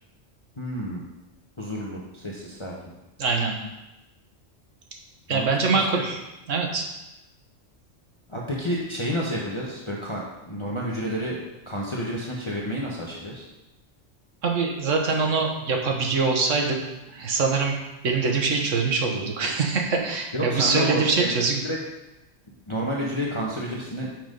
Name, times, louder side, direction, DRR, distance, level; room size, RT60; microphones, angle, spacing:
voice 1, 0.6-1.0 1.6-2.7 5.3-5.8 8.3-11.4 11.7-13.5 20.3-21.3 21.6-21.8 22.7-24.1, equal, 25° left, -4 dB, 1.0 m, -30 dB
voice 2, 3.2-3.6 5.3-6.2 6.5-6.8 14.4-16.8 17.1-17.7 18.0-21.6, right 4 dB, 90° right, 1 dB, 1.5 m, -23 dB
6.0 x 5.8 x 5.3 m, 0.97 s
omnidirectional pair, 1.3 m